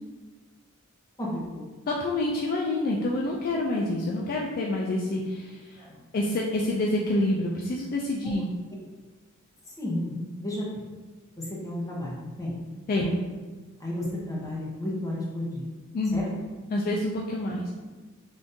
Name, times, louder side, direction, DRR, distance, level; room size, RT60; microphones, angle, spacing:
voice 1, 1.2-1.6 5.8-6.0 9.8-10.1 10.4-10.7 11.4-12.5 13.8-15.7 16.1-16.3, left 1 dB, 15° left, -5 dB, 0.7 m, -32 dB
voice 2, 1.9-5.8 6.1-8.5 12.9-13.2 15.9-16.2 16.7-17.7, left 1 dB, 45° left, -2 dB, 0.3 m, -27 dB
3.5 x 2.5 x 2.6 m, 1.3 s
head